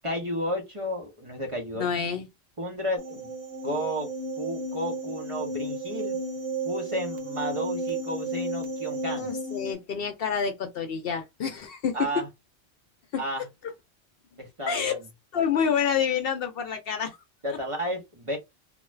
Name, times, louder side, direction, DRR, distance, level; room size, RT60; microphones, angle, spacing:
voice 1, 0.0-1.9 2.6-3.3 3.6-4.1 4.4-6.2 6.6-9.3 11.9-12.3 13.2-13.5 14.4-14.9 17.4-18.4, equal, 30° right, 0.9 m, -32 dB
voice 2, 1.7-2.3 9.2-12.2 13.1-13.2 14.7-14.9 15.3-17.2 17.5-17.6, left 7 dB, 65° left, 0.7 m, -28 dB
sound 1, 3.0-9.7, right 2 dB, 80° right, 1.0 m, -33 dB
2.5 x 2.3 x 3.1 m
omnidirectional pair, 1.1 m